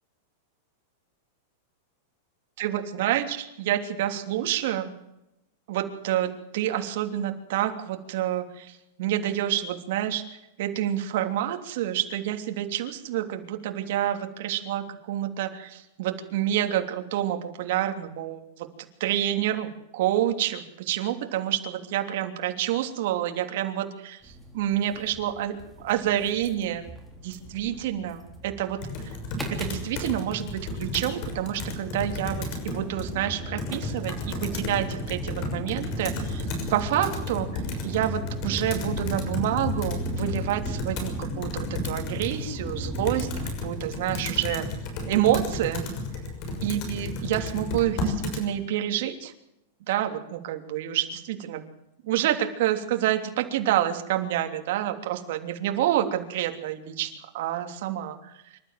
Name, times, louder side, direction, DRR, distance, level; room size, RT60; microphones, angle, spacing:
voice 1, 2.6-4.9 5.7-10.2 10.6-18.7 19.0-26.8 27.2-28.8 29.5-37.5 37.8-43.3 43.6-44.6 45.0-45.8 46.6-49.3 49.9-51.6 52.0-58.4, right 12 dB, 60° right, 5 dB, 3.1 m, -28 dB
sound 1, 24.2-43.5, right 1 dB, ahead, 3.7 m, -38 dB
Computer keyboard, 28.8-48.5, left 2 dB, 40° left, 6.4 m, -33 dB
26.0 x 13.0 x 7.7 m, 0.88 s
supercardioid pair, 160°, 0 cm